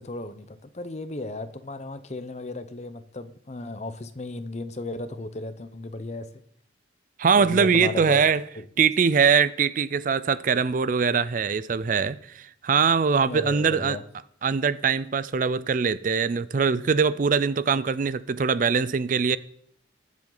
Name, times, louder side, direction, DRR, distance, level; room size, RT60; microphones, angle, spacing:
voice 1, 0.0-6.3 7.4-8.2 8.5-8.6 13.3-14.0, left 2 dB, 35° left, 0.7 m, -35 dB
voice 2, 7.2-8.4 8.8-14.0 14.4-19.4, right 5 dB, 45° right, 0.4 m, -22 dB
21.5 x 7.4 x 3.9 m
head